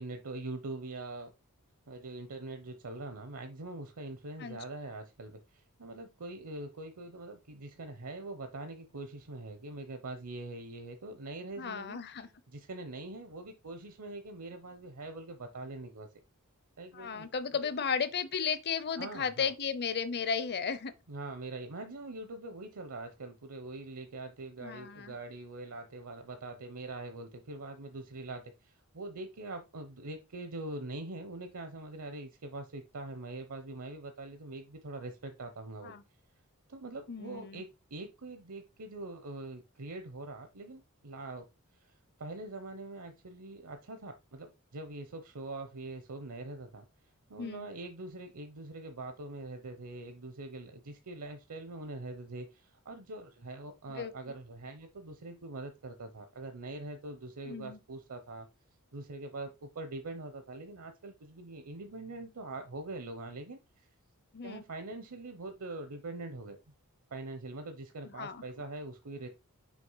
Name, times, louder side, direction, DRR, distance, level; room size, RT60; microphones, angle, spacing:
voice 1, 0.0-1.3 1.9-12.0 12.5-16.1 16.8-17.3 17.6-17.7 19.0-19.5 21.1-36.0 36.7-41.4 41.7-41.9 42.2-46.9 47.3-58.5 58.9-63.9 64.4-66.6 67.1-69.3, right 2 dB, 70° right, 0.8 m, -43 dB
voice 2, 11.6-12.3 16.9-20.9 24.6-25.1 35.8-36.0 37.1-37.6 47.4-47.7 53.9-54.1 57.4-57.8 64.3-64.6 68.2-68.4, left 6 dB, 50° left, 0.7 m, -34 dB
6.3 x 2.9 x 5.6 m
head